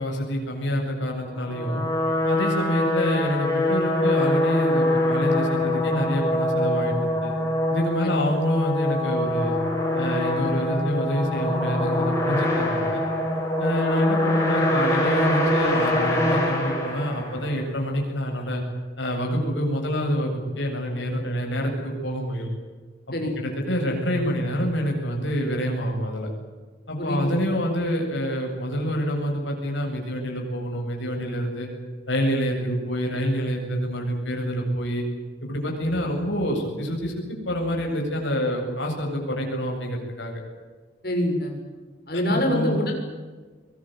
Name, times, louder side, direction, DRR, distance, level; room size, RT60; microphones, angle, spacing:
voice 1, 0.0-1.8 2.2-6.9 7.2-7.3 7.7-9.6 9.9-13.0 13.6-18.6 19.0-22.5 23.4-26.3 26.9-31.7 32.1-35.0 35.4-40.3 42.3-42.8, equal, 80° left, 1 dB, 8.0 m, -27 dB
sound 1, 1.3-17.6, left 1 dB, 15° left, 7.1 m, -24 dB
voice 2, 41.0-41.5 42.1-42.9, equal, 55° left, 2 dB, 6.9 m, -25 dB
23.5 x 20.0 x 9.4 m, 1.4 s
head